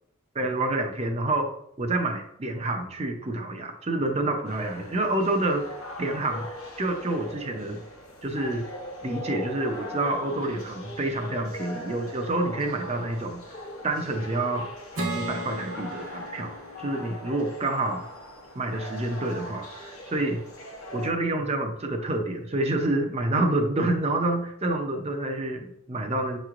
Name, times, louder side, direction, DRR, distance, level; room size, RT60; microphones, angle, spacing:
voice 1, 0.3-1.5 1.8-6.5 6.8-7.8 8.2-8.6 9.0-13.4 13.8-14.7 15.1-18.0 18.5-20.4 20.9-26.4, right 2 dB, 30° right, 4 dB, 0.5 m, -28 dB
sound 1, 4.4-21.1, left 1 dB, 75° left, 0.9 m, -40 dB
Acoustic guitar / Strum, 15.0-18.4, right 1 dB, 85° right, 1.0 m, -36 dB
6.5 x 3.1 x 2.4 m, 0.74 s
head